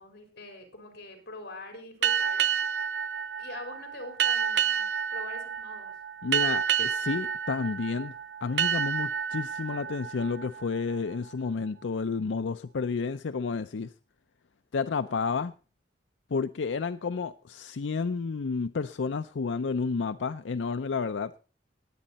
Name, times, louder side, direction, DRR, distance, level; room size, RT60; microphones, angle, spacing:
voice 1, 0.0-2.4 3.4-5.9, left 2 dB, 60° left, 4.4 m, -44 dB
sound 1, 2.0-11.3, right 8 dB, 70° right, 0.5 m, -29 dB
voice 2, 6.2-8.2 8.4-13.9 14.7-15.5 16.3-21.3, left 4 dB, 90° left, 0.5 m, -31 dB
19.0 x 8.7 x 4.1 m
head